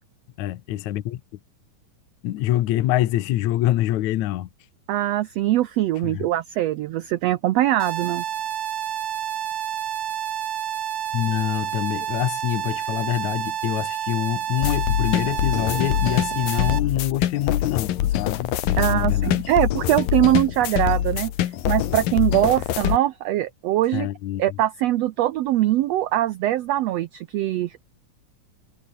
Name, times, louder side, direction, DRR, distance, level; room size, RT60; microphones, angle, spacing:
voice 1, 0.4-1.2 2.2-4.5 6.0-6.3 11.1-19.5 23.9-24.6, left 14 dB, 70° left, 2.2 m, -25 dB
voice 2, 4.9-8.2 18.8-21.3 21.7-24.1 24.4-27.8, right 14 dB, 85° right, 1.4 m, -22 dB
sound 1, 7.8-16.8, right 9 dB, 55° right, 2.4 m, -29 dB
sound 2, 14.6-23.0, left 12 dB, 85° left, 3.1 m, -24 dB
omnidirectional pair, 3.8 m